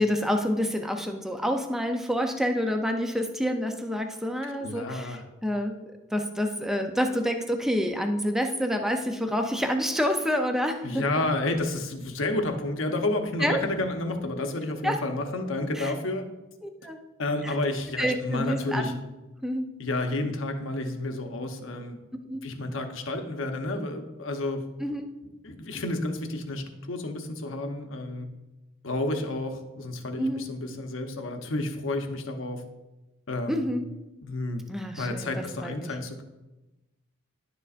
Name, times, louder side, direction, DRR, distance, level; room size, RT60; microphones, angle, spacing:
voice 1, 0.0-5.7 6.1-11.3 13.4-13.6 14.8-15.0 15.8-15.9 16.6-17.0 17.4-17.5 18.0-19.0 19.4-19.7 22.3-22.5 24.8-25.1 30.2-30.5 33.5-33.9 34.7-35.9, equal, ahead, 4 dB, 0.5 m, -28 dB
voice 2, 4.4-5.2 10.8-16.3 17.2-18.9 19.8-22.0 22.4-24.6 25.4-28.3 28.8-32.6 33.3-33.6 34.2-34.6 35.0-36.2, left 2 dB, 70° left, 5 dB, 0.9 m, -30 dB
10.5 x 6.8 x 2.5 m, 1.0 s
head